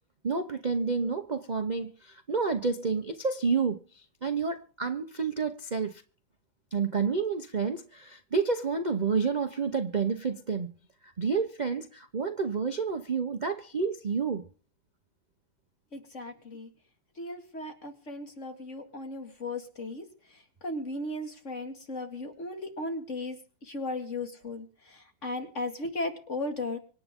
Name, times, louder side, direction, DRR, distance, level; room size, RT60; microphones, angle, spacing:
voice 1, 0.2-3.8 4.2-6.0 6.7-10.7 11.2-14.5, right 5 dB, 35° right, 0.7 m, -29 dB
voice 2, 15.9-16.7 17.2-20.0 20.6-23.4 23.7-24.7 25.2-26.8, left 2 dB, 40° left, 2.4 m, -36 dB
25.5 x 9.4 x 3.7 m
omnidirectional pair, 2.1 m